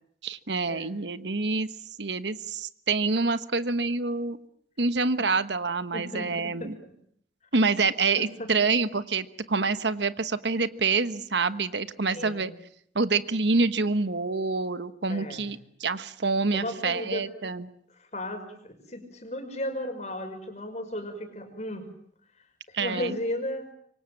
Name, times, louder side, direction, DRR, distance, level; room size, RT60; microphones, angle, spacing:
voice 1, 0.2-1.7 2.0-4.4 4.8-6.7 7.5-12.5 12.9-17.7 22.7-23.1, right 4 dB, 75° right, 12 dB, 1.3 m, -27 dB
voice 2, 5.9-6.7 8.2-8.5 12.0-12.5 15.1-15.5 16.5-17.3 17.9-21.9 22.7-23.7, left 1 dB, 40° left, 7 dB, 5.4 m, -35 dB
27.0 x 24.0 x 7.4 m, 0.68 s
head